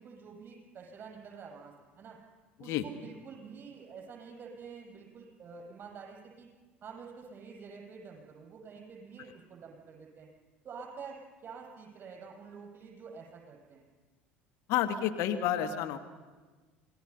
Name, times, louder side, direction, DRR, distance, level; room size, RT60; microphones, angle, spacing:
voice 1, 0.0-2.2 2.6-6.5 6.8-10.3 10.6-13.8, right 5 dB, 35° right, 1 dB, 7.1 m, -48 dB
voice 2, 14.7-16.0, left 10 dB, 55° left, 7 dB, 1.4 m, -30 dB
27.5 x 20.0 x 5.8 m, 1.3 s
figure-of-eight pair, 70°, 6 cm